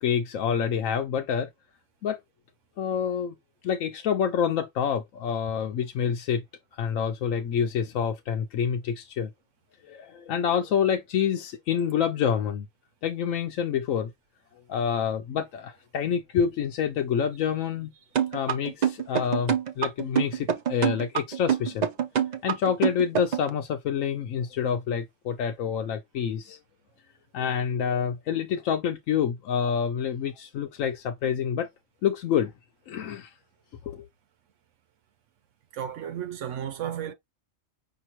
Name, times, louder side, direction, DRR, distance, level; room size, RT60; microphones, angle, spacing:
voice 1, 0.0-1.5 2.0-2.2 2.8-3.3 3.6-6.4 6.7-9.3 9.8-12.7 13.0-14.1 14.7-17.9 18.3-21.9 22.4-26.6 27.3-31.7 32.0-32.5 32.9-33.3 33.8-34.0, left 8 dB, 80° left, 1.0 m, -27 dB
sound 1, 18.2-23.5, right 8 dB, 50° right, 0.5 m, -25 dB
voice 2, 35.7-37.1, right 9 dB, 75° right, 1.0 m, -33 dB
5.4 x 2.8 x 2.9 m
omnidirectional pair, 1.3 m